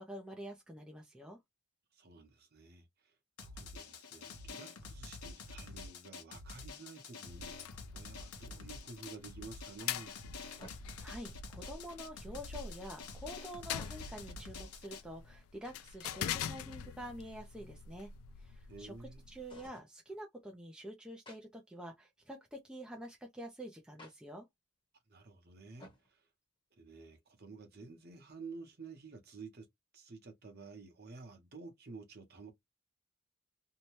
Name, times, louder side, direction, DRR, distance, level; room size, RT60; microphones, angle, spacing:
voice 1, 0.0-1.4 11.0-18.1 18.4-18.9 19.3-24.5, equal, 5° right, 0.4 m, -47 dB
voice 2, 1.9-3.1 3.4-10.2 18.7-19.2 25.1-26.3 26.8-29.7 29.9-32.5, right 4 dB, 45° right, 0.8 m, -51 dB
Drum, 3.4-15.0, left 3 dB, 90° left, 0.8 m, -48 dB
sound 1, 7.3-19.7, left 9 dB, 70° left, 0.3 m, -45 dB
sound 2, 10.6-11.1 13.6-14.3 15.9-16.6 19.5-19.9 21.3-21.4 24.0-24.1 25.8-26.1, equal, 20° left, 0.9 m, -55 dB
2.7 x 2.2 x 3.0 m
head